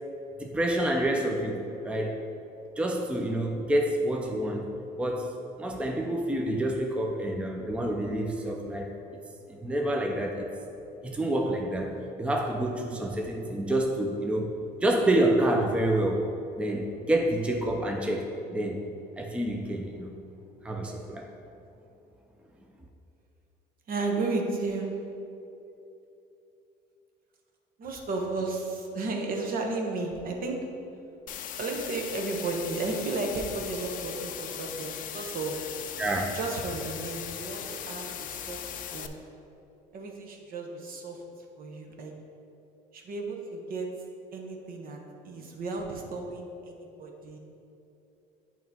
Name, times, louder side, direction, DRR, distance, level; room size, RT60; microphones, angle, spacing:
voice 1, 0.4-2.2 2.8-4.6 5.0-8.9 9.5-10.5 11.0-14.6 14.8-16.3 16.6-18.8 19.2-20.2 20.6-21.3 36.0-36.4, right 1 dB, 5° right, 2 dB, 0.5 m, -28 dB
voice 2, 23.9-24.9 27.8-30.6 31.6-35.6 36.3-38.6 38.9-39.2 39.9-42.1 42.9-43.9 44.3-45.0 45.2-47.4, right 3 dB, 60° right, 1 dB, 1.0 m, -33 dB
sound 1, 31.3-39.1, left 10 dB, 55° left, 0.4 m, -39 dB
8.5 x 3.0 x 5.4 m, 2.8 s
cardioid pair, 110°, 17 cm